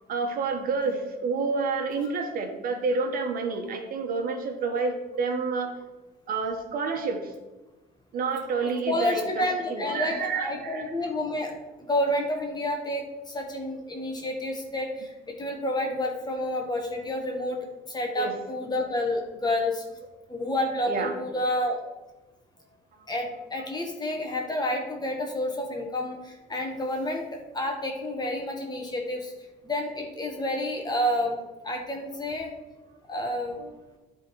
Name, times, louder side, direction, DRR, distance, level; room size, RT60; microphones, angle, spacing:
voice 1, 0.1-5.7 6.3-7.3 8.1-10.9 18.1-18.3 20.9-21.1 33.6-33.7, right 4 dB, 60° right, 4 dB, 1.3 m, -29 dB
voice 2, 8.9-11.5 11.8-19.8 20.3-21.8 23.1-27.3 27.5-29.3 29.6-31.4 31.6-32.5 33.1-33.6, left 1 dB, 25° left, 1 dB, 1.4 m, -29 dB
10.0 x 3.9 x 4.6 m, 1.1 s
cardioid pair, 110°, 17 cm